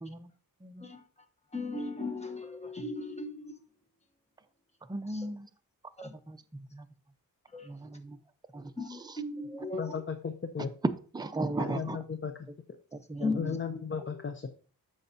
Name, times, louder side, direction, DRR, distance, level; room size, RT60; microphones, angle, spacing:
voice 1, 0.0-0.3 0.6-0.9 4.8-5.5 6.0-6.9 7.6-8.2 8.5-9.2 10.6-10.7 11.1-12.0 12.9-13.6, right 2 dB, 10° right, 8 dB, 0.5 m, -38 dB
voice 2, 1.5-3.6 6.0-6.1 7.5-7.7 8.8-10.0 13.2-13.4, left 3 dB, 20° left, 5 dB, 1.0 m, -36 dB
voice 3, 9.8-10.7 11.6-12.3 13.4-14.5, left 6 dB, 35° left, 7 dB, 0.6 m, -35 dB
13.5 x 5.2 x 2.7 m, 0.40 s
wide cardioid pair, 155°, 36 cm